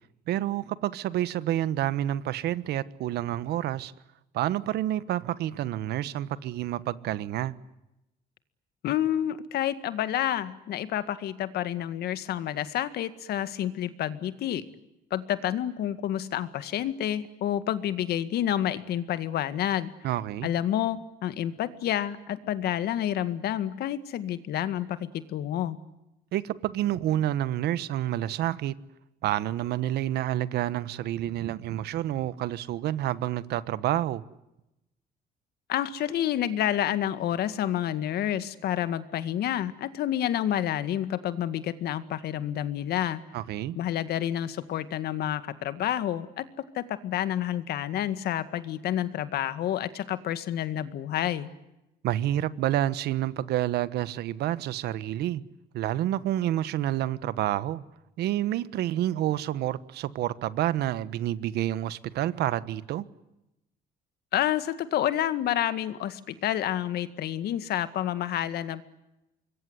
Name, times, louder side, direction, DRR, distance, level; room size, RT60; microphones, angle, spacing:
voice 1, 0.3-3.9 4.3-7.5 20.0-20.5 26.3-28.7 29.2-34.2 43.3-43.8 52.0-55.4 55.7-57.8 58.2-63.0, right 13 dB, 75° right, 1.3 m, -29 dB
voice 2, 8.8-14.7 15.1-19.9 20.4-25.8 35.7-43.2 43.7-46.5 46.7-51.5 64.3-68.8, left 11 dB, 70° left, 1.9 m, -29 dB
25.5 x 22.0 x 9.6 m
cardioid pair, 110°, 17 cm